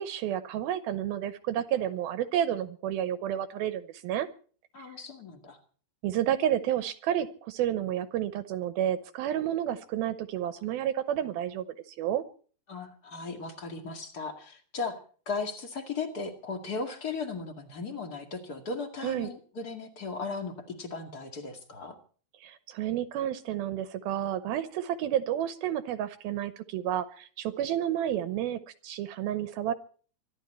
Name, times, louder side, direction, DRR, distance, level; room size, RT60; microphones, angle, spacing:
voice 1, 0.0-4.3 6.0-12.2 19.0-19.3 22.4-29.7, right 11 dB, 75° right, 12 dB, 2.4 m, -30 dB
voice 2, 4.7-5.6 12.7-15.0 15.2-21.9, left 4 dB, 40° left, 6 dB, 1.5 m, -37 dB
25.0 x 12.5 x 4.4 m, 0.43 s
omnidirectional pair, 5.0 m